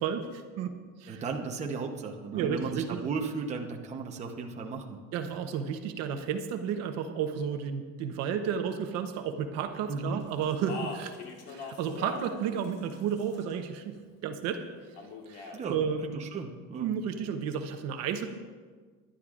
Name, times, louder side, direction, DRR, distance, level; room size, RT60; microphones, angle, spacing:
voice 1, 0.0-1.2 2.3-3.0 5.1-11.1 11.5-13.9 14.2-14.6 15.3-16.0 16.8-18.3, right 7 dB, 55° right, 6 dB, 0.9 m, -32 dB
voice 2, 1.1-5.0 9.9-10.2 15.5-15.8 16.1-16.9, right 4 dB, 20° right, 1 dB, 0.9 m, -35 dB
Speech, 10.4-12.4 12.6-13.5 15.0-15.6, left 4 dB, 55° left, 1.7 m, -41 dB
21.0 x 11.5 x 2.5 m, 1.5 s
cardioid pair, 170°, 31 cm